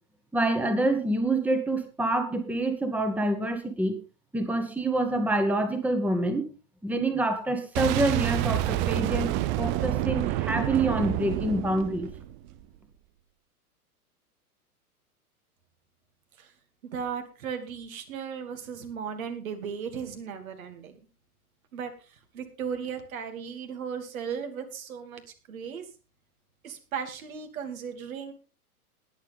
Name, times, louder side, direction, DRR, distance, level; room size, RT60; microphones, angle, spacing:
voice 1, 0.3-3.9 4.3-6.4 6.8-9.3 9.6-12.1, right 2 dB, 5° right, 7 dB, 1.6 m, -26 dB
Boom, 7.8-12.6, right 15 dB, 25° right, 0.5 m, -28 dB
voice 2, 16.9-21.0 21.7-21.9 22.3-25.2 25.5-25.8 26.6-28.3, right 7 dB, 65° right, 7 dB, 2.8 m, -36 dB
20.5 x 7.5 x 3.6 m, 0.33 s
figure-of-eight pair, 105°, 45 cm